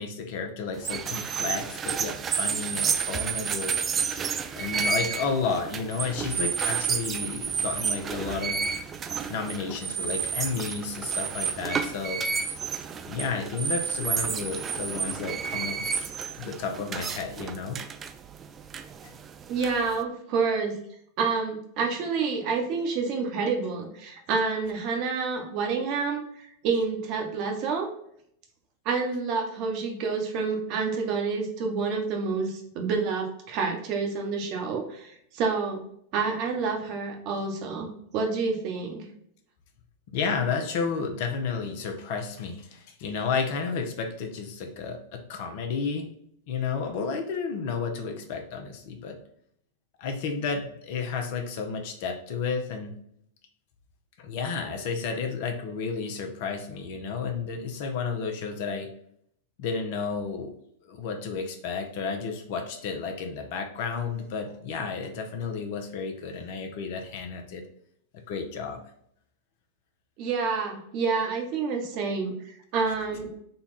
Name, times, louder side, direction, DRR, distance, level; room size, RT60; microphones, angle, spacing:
voice 1, 0.0-3.7 4.5-8.6 9.3-12.2 13.1-17.8 19.0-19.1 40.1-46.1 46.5-49.2 50.0-52.9 54.2-58.9 59.6-60.5 60.8-67.6 68.1-68.8, left 5 dB, 55° left, 4 dB, 0.7 m, -32 dB
sound 1, 0.8-20.0, right 6 dB, 25° right, 0.3 m, -31 dB
voice 2, 19.5-20.7 21.2-27.9 28.8-35.8 36.1-39.0 70.2-73.3, right 4 dB, 50° right, 3 dB, 0.9 m, -28 dB
3.9 x 2.3 x 4.0 m, 0.69 s
hypercardioid pair, 95°, 0 cm